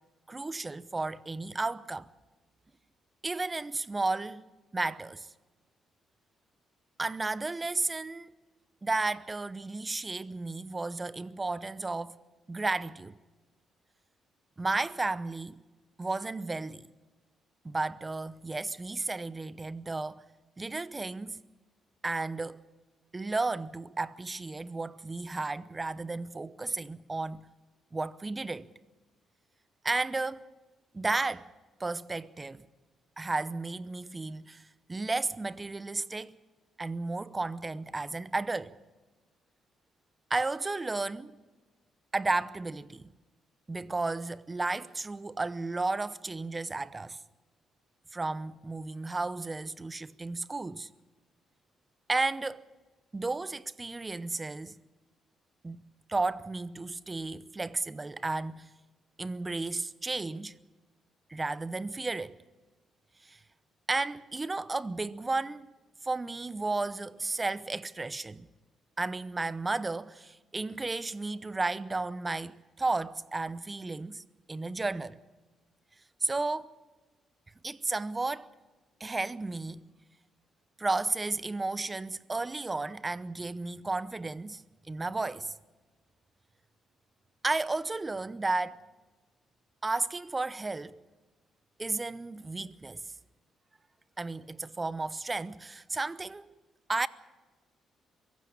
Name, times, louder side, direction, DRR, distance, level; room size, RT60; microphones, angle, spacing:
voice 1, 0.3-2.1 3.2-4.4 4.7-5.3 7.0-8.3 8.8-12.2 12.5-13.2 14.6-15.6 16.0-16.9 17.6-20.2 20.6-21.4 22.0-22.6 23.1-27.5 27.9-28.7 29.8-30.4 30.9-31.5 31.8-32.6 33.2-36.4 36.8-38.7 40.3-41.3 42.1-43.1 43.7-47.2 48.1-50.9 52.1-52.6 53.1-54.8 55.6-55.8 56.1-58.7 59.2-60.6 61.3-62.4 63.2-63.4 63.9-65.7 66.0-68.5 69.0-74.2 74.5-75.2 76.2-76.7 77.6-78.5 79.0-79.9 80.8-85.5 87.4-88.8 89.8-91.0 91.8-93.0 94.2-96.5 96.9-97.1, right 3 dB, 20° right, 0.8 m, -33 dB
23.0 x 15.5 x 8.5 m
cardioid pair, 90°, 0 cm